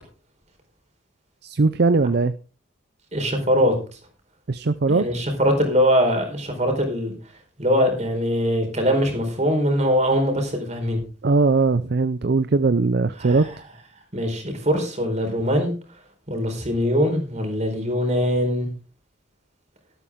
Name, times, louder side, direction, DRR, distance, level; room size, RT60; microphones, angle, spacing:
voice 1, 1.4-2.3 4.5-5.1 11.2-13.4, right 3 dB, 55° right, 0.5 m, -20 dB
voice 2, 3.1-3.7 4.9-7.1 7.6-11.0 13.2-13.5 14.1-15.7 16.3-18.7, equal, 35° right, 4.4 m, -22 dB
13.0 x 12.5 x 3.7 m
head